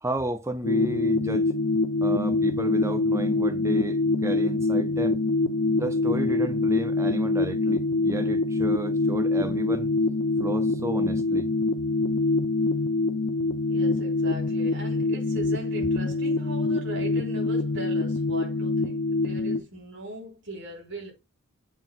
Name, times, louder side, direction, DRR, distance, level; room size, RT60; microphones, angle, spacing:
voice 1, 0.0-1.5 2.0-5.2 5.7-9.9 10.4-11.5, right 1 dB, 15° right, 0.6 m, -32 dB
sound 1, 0.6-19.6, left 3 dB, 75° left, 0.8 m, -25 dB
voice 2, 13.7-21.1, right 1 dB, 55° right, 3.8 m, -39 dB
7.5 x 2.9 x 5.5 m
head